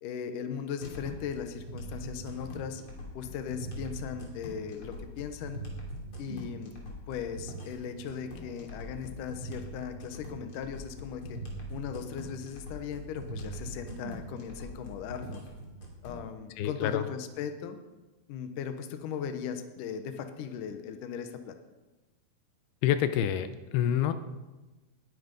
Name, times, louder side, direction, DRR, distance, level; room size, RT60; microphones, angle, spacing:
voice 1, 0.0-2.8 3.1-5.6 6.2-6.7 7.1-11.4 11.7-15.4 16.0-17.8 18.3-21.6, left 7 dB, 70° left, 7 dB, 2.4 m, -38 dB
sound 1, 0.8-16.2, right 1 dB, 35° left, 3.5 m, -42 dB
voice 2, 16.6-17.0 22.8-24.1, left 10 dB, 85° left, 10 dB, 2.7 m, -27 dB
19.5 x 9.4 x 5.4 m, 1.1 s
omnidirectional pair, 4.4 m